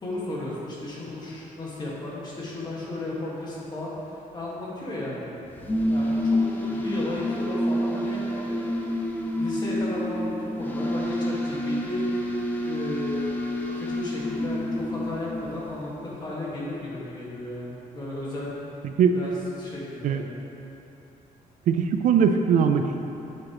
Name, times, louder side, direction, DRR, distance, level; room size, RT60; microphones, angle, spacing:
voice 1, 0.0-5.3 5.9-9.0 9.4-12.1 12.6-13.3 13.7-18.6 19.2-19.3 19.6-20.2, left 1 dB, 30° left, -6 dB, 1.7 m, -34 dB
sound 1, 5.5-15.9, left 1 dB, 10° left, 0.6 m, -28 dB
voice 2, 21.7-23.0, right 7 dB, 60° right, 6 dB, 0.4 m, -20 dB
8.9 x 7.3 x 3.0 m, 3.0 s
cardioid pair, 160°, 15 cm